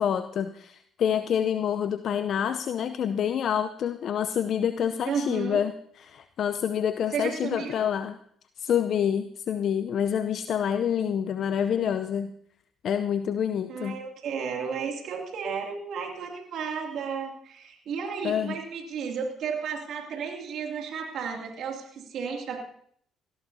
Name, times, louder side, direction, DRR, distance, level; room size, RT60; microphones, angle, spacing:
voice 1, 0.0-8.2 8.6-12.3 12.8-14.0 18.2-18.6, left 8 dB, 60° left, 10 dB, 0.7 m, -27 dB
voice 2, 5.1-5.6 7.1-7.8 13.7-22.6, right 6 dB, 65° right, 1 dB, 2.6 m, -33 dB
20.5 x 15.0 x 2.8 m, 0.63 s
hypercardioid pair, 55°, 0 cm